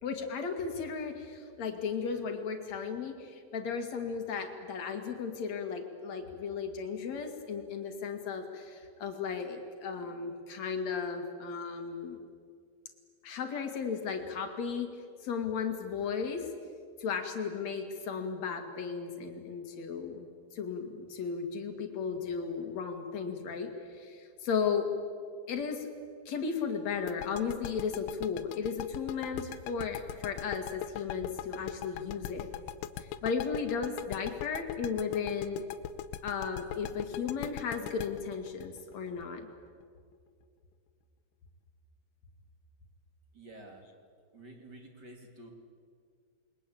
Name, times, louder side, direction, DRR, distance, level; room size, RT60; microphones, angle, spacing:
voice 1, 0.0-12.2 13.2-14.9 15.2-16.4 17.0-24.9 25.5-25.9 26.3-32.5 33.0-35.7 36.2-39.5, left 6 dB, 45° left, 5 dB, 2.6 m, -35 dB
sound 1, 27.1-39.8, left 11 dB, 90° left, 3.4 m, -40 dB
voice 2, 43.3-43.8 44.3-45.5, right 1 dB, 25° right, 3 dB, 2.7 m, -50 dB
28.5 x 22.5 x 8.6 m, 2.2 s
omnidirectional pair, 5.4 m